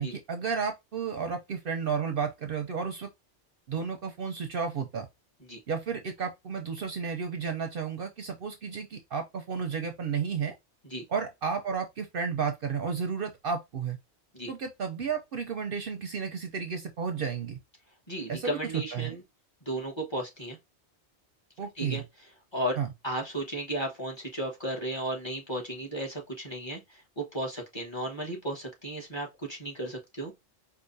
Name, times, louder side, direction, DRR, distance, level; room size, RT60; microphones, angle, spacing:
voice 1, 0.0-3.1 3.7-5.1 5.7-10.5 11.1-14.0 14.5-17.6 18.3-19.2 21.6-22.0 22.8-22.9, right 6 dB, 60° right, 0.7 m, -32 dB
voice 2, 18.1-19.2 19.6-20.6 21.8-22.0 22.5-22.8 23.0-30.3, right 1 dB, 25° left, 1.3 m, -34 dB
4.8 x 2.5 x 2.6 m
omnidirectional pair, 1.2 m